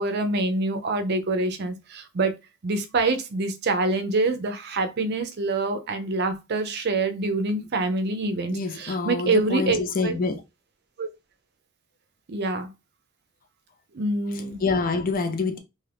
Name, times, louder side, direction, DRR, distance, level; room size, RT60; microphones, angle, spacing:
voice 1, 0.0-2.3 2.6-10.1 11.0-11.1 12.3-12.7 13.9-14.6, right 3 dB, 50° right, 0.5 m, -26 dB
voice 2, 8.5-10.4 14.3-15.6, left 4 dB, 40° left, 0.5 m, -26 dB
2.6 x 2.5 x 3.3 m
head